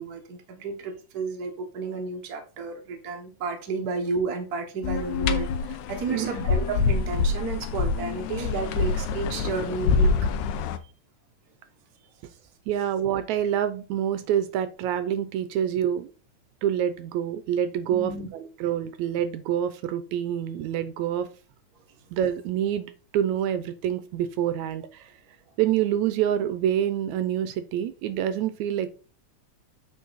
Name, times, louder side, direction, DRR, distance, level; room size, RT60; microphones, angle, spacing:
voice 1, 0.0-10.1 17.9-18.3, right 4 dB, 55° right, 4 dB, 1.0 m, -32 dB
sound 1, 4.8-10.8, left 4 dB, 80° left, 2.0 m, -26 dB
voice 2, 12.7-16.1 16.6-21.3 22.1-25.1 25.6-28.9, right 10 dB, 80° right, 11 dB, 1.9 m, -27 dB
8.4 x 4.5 x 4.0 m, 0.35 s
omnidirectional pair, 3.5 m